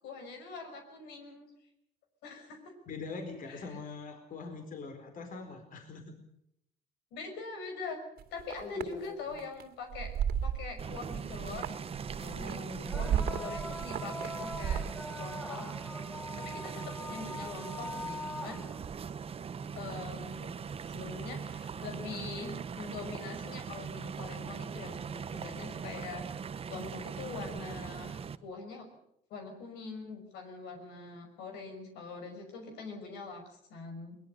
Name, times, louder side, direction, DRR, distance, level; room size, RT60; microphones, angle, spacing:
voice 1, 0.0-1.5 2.2-2.8 3.5-3.7 7.1-8.0 8.3-10.1 10.4-11.7 12.4-12.6 12.9-14.8 15.2-15.7 16.4-18.6 19.7-20.5 20.8-26.2 26.7-28.9 29.3-34.2, left 4 dB, 85° left, 5 dB, 5.8 m, -43 dB
voice 2, 2.9-6.2 8.6-9.4 12.2-13.3, left 4 dB, 55° left, 5 dB, 4.3 m, -43 dB
sound 1, 8.2-8.9 9.4-9.6 9.9-11.0 11.3-15.0, right 9 dB, 65° right, 2.5 m, -34 dB
sound 2, 10.7-10.8 12.8-19.0 20.5-20.6 21.4-21.5, left 1 dB, ahead, 1.2 m, -43 dB
sound 3, 10.8-28.4, right 6 dB, 35° right, 1.0 m, -41 dB
22.0 x 21.0 x 6.7 m, 0.77 s
cardioid pair, 110°, 17 cm